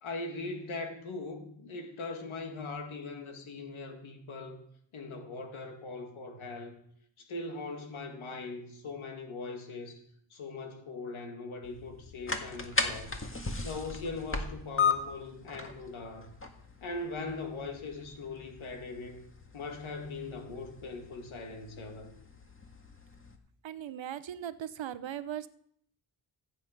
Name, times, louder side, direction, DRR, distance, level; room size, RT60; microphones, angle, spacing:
voice 1, 0.0-4.6 4.9-6.8 7.2-10.0 10.3-13.2 13.6-16.3 16.8-19.2 19.5-22.1, left 3 dB, 90° left, 4 dB, 2.1 m, -40 dB
sound 1, 11.6-23.4, left 5 dB, 25° left, 1.9 m, -37 dB
voice 2, 23.6-25.5, right 10 dB, 70° right, 14 dB, 0.8 m, -38 dB
14.5 x 8.4 x 5.1 m, 0.68 s
cardioid pair, 55°, 47 cm